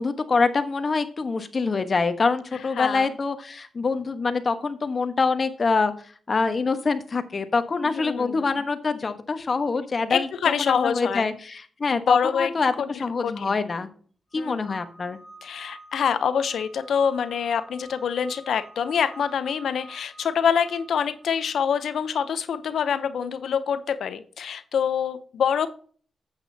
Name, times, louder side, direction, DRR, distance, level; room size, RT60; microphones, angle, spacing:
voice 1, 0.0-5.9 6.3-10.3 10.6-13.9 14.3-15.2, left 4 dB, 45° left, 9 dB, 1.2 m, -25 dB
voice 2, 2.8-3.1 7.8-8.5 10.1-11.3 11.9-12.5 12.8-12.9 13.2-13.6 14.4-14.8 15.4-25.7, left 7 dB, 75° left, 13 dB, 0.7 m, -25 dB
sound 1, 14.3-22.1, right 3 dB, 5° left, 2.3 m, -48 dB
8.8 x 8.4 x 2.8 m, 0.44 s
cardioid pair, 70°, 0 cm